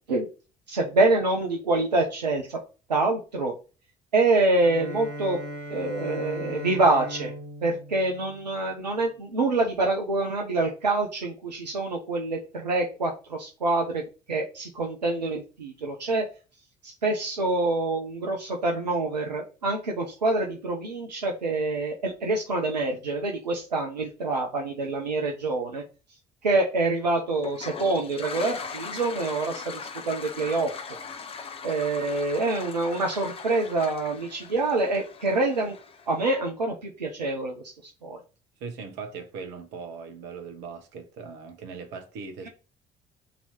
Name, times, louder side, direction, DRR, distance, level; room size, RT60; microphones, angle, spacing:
voice 1, 0.7-2.6 2.9-3.5 4.1-5.4 5.7-7.3 7.6-14.0 14.3-16.3 16.8-25.8 26.4-29.8 30.1-30.7 31.6-35.8 36.1-37.6 38.0-38.2, right 2 dB, 85° right, 0.5 m, -26 dB
Bowed string instrument, 4.6-9.0, equal, 85° left, 0.9 m, -38 dB
Toilet flush, 27.4-36.2, left 5 dB, 30° left, 0.5 m, -40 dB
voice 2, 38.6-42.5, right 5 dB, 60° right, 0.9 m, -39 dB
2.9 x 2.7 x 4.3 m
figure-of-eight pair, 50°, 21 cm